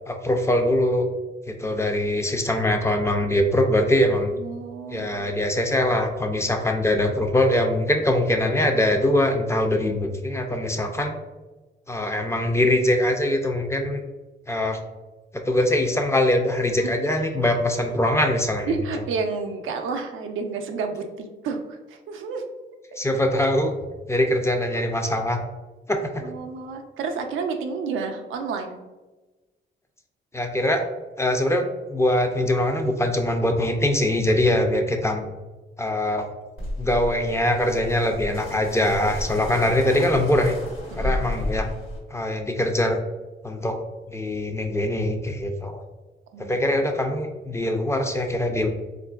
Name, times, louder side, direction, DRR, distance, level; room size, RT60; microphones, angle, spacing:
voice 1, 0.1-1.1 1.5-4.3 4.9-11.1 11.9-14.0 14.5-14.8 15.3-18.7 23.0-23.7 24.1-25.4 25.9-26.2 30.3-30.8 31.2-35.2 35.8-36.3 36.8-40.6 41.0-41.7 42.1-43.0 43.4-43.8 44.1-45.8 46.4-48.7, left 1 dB, 15° left, 4 dB, 0.4 m, -22 dB
voice 2, 4.4-5.3 16.8-16.9 18.7-22.4 26.2-28.8 40.9-41.2 46.3-46.7, right 4 dB, 85° right, 4 dB, 0.4 m, -30 dB
sound 1, 36.6-42.0, left 1 dB, 85° left, 1.2 m, -32 dB
3.6 x 2.5 x 2.3 m, 1.2 s
cardioid pair, 80°, 20 cm